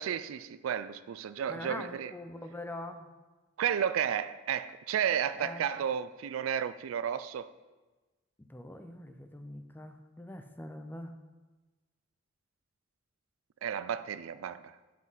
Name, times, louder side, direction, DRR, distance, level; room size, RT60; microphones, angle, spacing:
voice 1, 0.0-2.1 3.6-7.5 13.6-14.7, right 8 dB, 85° right, 0.3 m, -32 dB
voice 2, 1.5-3.1 5.4-5.6 8.5-11.2, left 1 dB, 10° left, 0.5 m, -43 dB
7.3 x 5.8 x 4.0 m
head